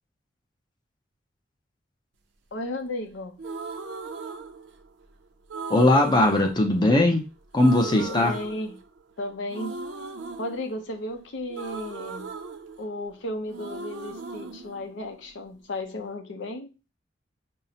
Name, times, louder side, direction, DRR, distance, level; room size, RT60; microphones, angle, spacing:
voice 1, 2.5-3.4 7.9-8.8 9.2-9.8 10.4-12.3 12.8-16.7, left 1 dB, 80° left, 0.6 m, -34 dB
sound 1, 3.4-5.1 5.5-7.3 7.5-9.1 9.5-13.2 13.5-15.5, right 4 dB, 80° right, 0.5 m, -38 dB
voice 2, 5.7-7.2 7.5-8.3, left 1 dB, 25° left, 0.5 m, -19 dB
5.3 x 2.1 x 2.7 m
head